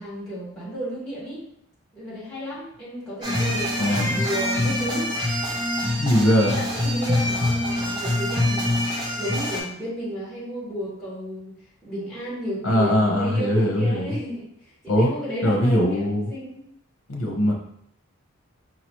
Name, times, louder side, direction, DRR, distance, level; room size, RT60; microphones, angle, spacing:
voice 1, 0.0-1.4 1.9-5.5 6.5-11.5 11.8-16.7, equal, 5° left, -11 dB, 1.7 m, -33 dB
sound 1, 3.2-9.6, left 1 dB, 20° right, 0.8 m, -25 dB
voice 2, 3.8-4.3 6.0-6.6 12.6-14.1 14.9-15.1 15.4-16.3 17.1-17.5, equal, 75° left, 0 dB, 0.9 m, -21 dB
4.9 x 2.9 x 3.0 m, 0.71 s
head